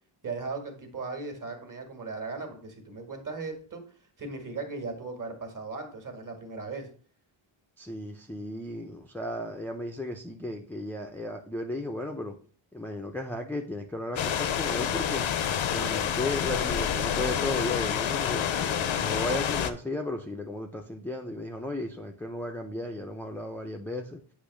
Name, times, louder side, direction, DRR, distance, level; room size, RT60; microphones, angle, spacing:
voice 1, 0.2-3.8 4.2-6.9, right 3 dB, 40° right, 4 dB, 1.8 m, -37 dB
voice 2, 7.8-12.3 12.7-15.3 15.7-24.2, left 1 dB, 5° left, 2 dB, 0.5 m, -35 dB
sound 1, 14.2-19.7, left 9 dB, 70° left, 0.7 m, -28 dB
8.3 x 3.0 x 6.2 m, 0.44 s
wide cardioid pair, 140°, 49 cm